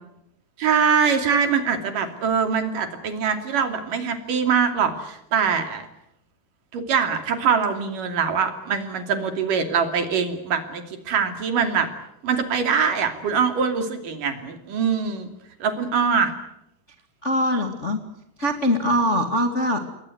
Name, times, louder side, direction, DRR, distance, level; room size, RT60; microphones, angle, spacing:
voice 1, 0.6-5.9 6.7-11.9 12.2-15.3 15.6-16.3, right 6 dB, 55° right, 7 dB, 4.1 m, -23 dB
voice 2, 17.2-18.0 18.4-19.8, equal, 25° left, 5 dB, 1.6 m, -22 dB
28.5 x 21.5 x 8.0 m, 0.82 s
omnidirectional pair, 4.6 m